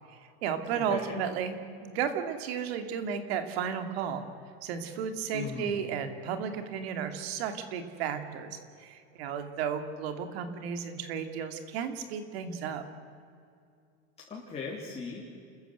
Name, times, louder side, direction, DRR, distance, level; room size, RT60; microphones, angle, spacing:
voice 1, 0.1-1.5 1.8-4.2 4.6-12.8, right 7 dB, 80° right, 7 dB, 2.6 m, -33 dB
voice 2, 0.7-1.2 5.3-5.8 14.3-15.2, left 5 dB, 20° left, -4 dB, 3.5 m, -38 dB
29.5 x 14.5 x 8.2 m, 2.4 s
supercardioid pair, 145°, 31 cm